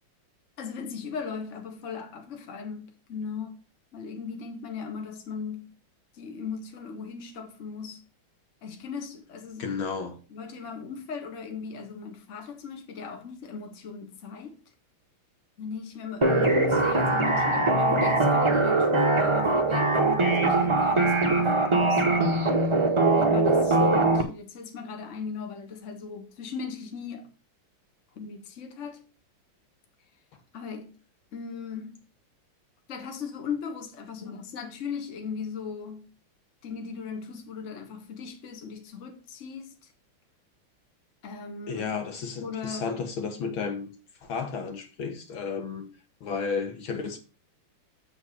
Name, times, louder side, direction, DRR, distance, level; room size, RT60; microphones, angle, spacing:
voice 1, 0.6-3.5 3.9-5.7 6.1-8.0 8.6-9.7 10.3-14.6 15.6-22.0 23.1-27.3 28.1-29.0 30.5-30.9 31.3-32.0 32.9-36.1 36.6-39.9 41.2-41.9 42.4-43.0, left 5 dB, 40° left, 1.4 m, -38 dB
voice 2, 9.6-10.2 41.7-43.9 44.2-45.9 46.2-47.2, left 5 dB, 65° left, 1.9 m, -32 dB
sound 1, 16.2-24.2, right 2 dB, 55° right, 0.3 m, -22 dB
7.8 x 4.1 x 6.2 m
omnidirectional pair, 2.4 m